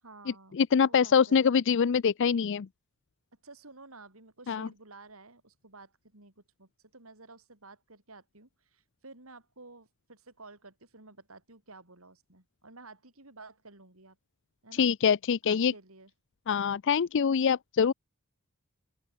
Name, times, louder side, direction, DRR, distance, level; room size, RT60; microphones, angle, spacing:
voice 1, 0.0-0.6 0.8-1.5 3.4-14.2 14.6-14.9 15.4-16.1, right 3 dB, 70° right, 5.2 m, -52 dB
voice 2, 0.5-2.7 4.5-4.7 14.8-15.7 16.5-17.9, left 6 dB, 60° left, 0.4 m, -24 dB
open air
head